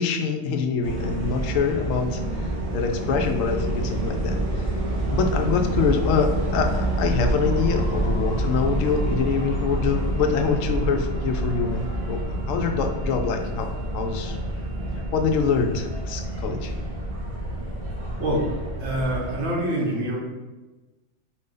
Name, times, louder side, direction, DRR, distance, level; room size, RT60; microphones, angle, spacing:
voice 1, 0.0-2.2 2.7-4.4 5.1-12.2 12.5-14.4 15.1-16.7, left 5 dB, 85° left, 5 dB, 1.0 m, -25 dB
sound 1, 0.8-19.5, right 1 dB, 35° right, 0.6 m, -27 dB
voice 2, 18.2-18.5 18.8-20.2, right 1 dB, 80° right, -2 dB, 1.4 m, -25 dB
4.2 x 2.6 x 3.7 m, 1.2 s
omnidirectional pair, 1.3 m